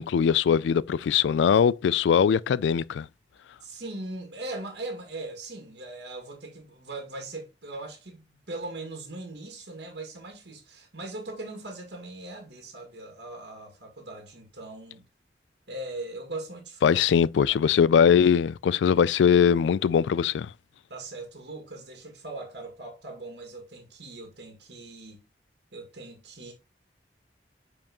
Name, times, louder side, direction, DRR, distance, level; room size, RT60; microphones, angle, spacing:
voice 1, 0.0-3.1 16.8-20.5, left 7 dB, 90° left, 0.3 m, -21 dB
voice 2, 3.6-15.1 15.7-17.0 20.9-25.2 25.7-26.5, right 2 dB, 70° right, 1.9 m, -40 dB
7.4 x 4.7 x 2.9 m
head